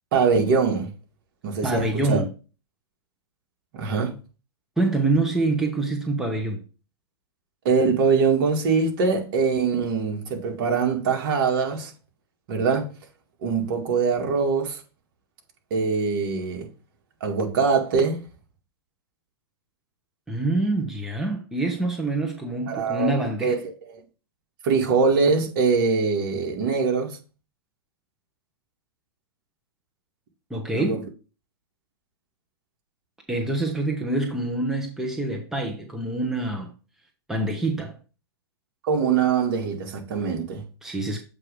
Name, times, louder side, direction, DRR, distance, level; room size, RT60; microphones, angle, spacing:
voice 1, 0.1-0.9 1.4-2.2 3.7-4.1 7.6-11.9 12.5-12.9 13.4-14.8 15.7-16.7 17.2-18.2 22.7-23.1 23.4-23.5 24.6-27.2 30.7-31.0 38.8-40.6, right 5 dB, 55° right, 2.0 m, -23 dB
voice 2, 1.6-2.3 4.8-6.6 20.3-23.6 30.5-31.0 33.3-36.7 37.3-38.0 40.8-41.2, right 2 dB, 5° right, 1.0 m, -26 dB
7.5 x 3.2 x 5.1 m
hypercardioid pair, 120°, 14 cm